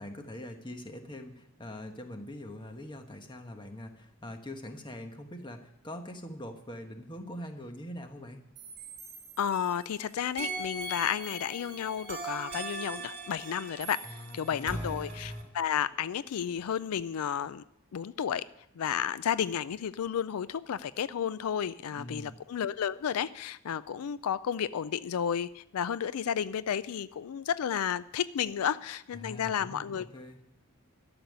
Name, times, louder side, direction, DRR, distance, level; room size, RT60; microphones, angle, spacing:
voice 1, 0.0-8.4 14.0-15.0 21.9-22.3 29.1-30.4, left 1 dB, 20° left, 5 dB, 1.2 m, -43 dB
sound 1, 8.6-9.9 10.4-15.4, right 2 dB, 30° right, 3.4 m, -40 dB
voice 2, 9.4-17.6 17.9-18.4 18.8-30.1, left 8 dB, 85° left, 16 dB, 0.4 m, -32 dB
13.0 x 7.0 x 9.4 m, 0.81 s
head